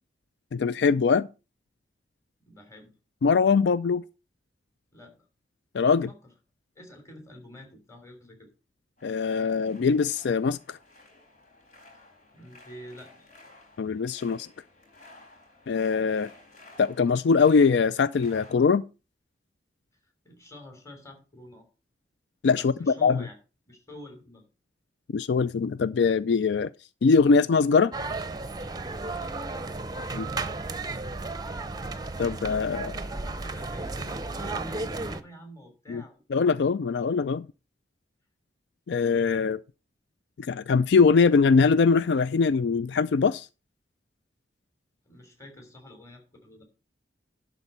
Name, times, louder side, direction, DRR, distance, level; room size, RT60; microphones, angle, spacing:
voice 1, 0.5-1.3 3.2-4.0 5.7-6.1 9.0-10.8 13.8-14.5 15.7-16.3 16.8-18.8 22.4-22.7 23.0-23.2 25.1-26.7 27.0-27.9 30.1-30.3 32.2-33.0 35.9-36.0 36.3-37.5 38.9-39.6 40.4-43.5, left 5 dB, 75° left, 0.4 m, -22 dB
voice 2, 2.4-2.9 4.9-5.3 6.1-6.2 6.7-8.5 12.3-13.3 20.2-21.6 22.6-23.4 23.7-24.4 29.1-29.4 33.1-36.2 45.0-46.6, left 1 dB, 15° left, 3.2 m, -47 dB
sound 1, 9.0-18.5, left 2 dB, 45° left, 4.2 m, -54 dB
sound 2, 27.9-35.2, right 3 dB, 20° right, 0.7 m, -34 dB
11.5 x 4.1 x 6.8 m
head